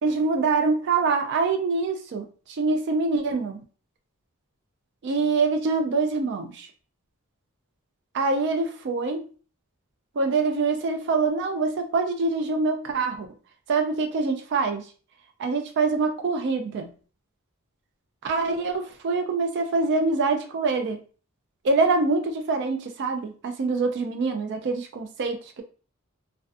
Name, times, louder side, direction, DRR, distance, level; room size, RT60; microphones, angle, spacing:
voice 1, 0.0-3.6 5.0-6.7 8.1-9.2 10.2-13.3 13.7-14.9 15.4-16.9 18.2-21.0 21.6-25.6, right 3 dB, 55° right, 6 dB, 0.3 m, -25 dB
2.4 x 2.2 x 2.5 m, 0.39 s
head